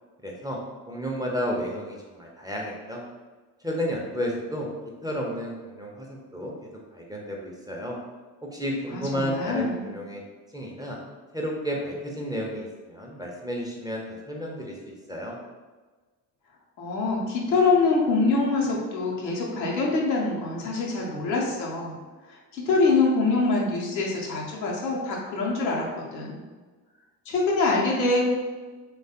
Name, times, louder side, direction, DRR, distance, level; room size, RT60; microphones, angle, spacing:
voice 1, 0.2-0.6 0.9-3.0 3.6-4.7 5.0-6.1 6.3-6.5 6.9-8.0 8.4-10.2 10.5-11.0 11.3-15.4, equal, 10° right, -2 dB, 0.4 m, -32 dB
voice 2, 8.9-9.8 16.8-21.9 22.3-26.4 27.3-28.2, left 3 dB, 85° left, -3 dB, 0.6 m, -25 dB
3.2 x 2.2 x 2.7 m, 1.3 s
figure-of-eight pair, 45°, 50 cm